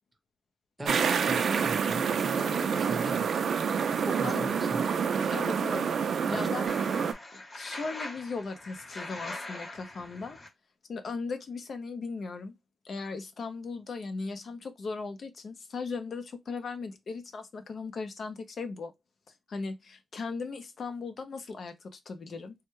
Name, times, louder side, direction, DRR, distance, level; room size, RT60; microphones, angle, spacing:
voice 1, 0.8-3.3 3.9-4.8 6.3-6.5, right 1 dB, 10° right, 0.7 m, -39 dB
sound 1, 0.8-7.1, right 6 dB, 65° right, 0.4 m, -28 dB
voice 2, 5.3-6.7 7.3-10.4 10.9-12.5 12.8-18.9 19.5-22.5, left 4 dB, 50° left, 0.4 m, -38 dB
sound 2, 6.7-10.5, left 2 dB, 30° left, 0.8 m, -42 dB
3.3 x 2.1 x 3.0 m
wide cardioid pair, 165°, 0 cm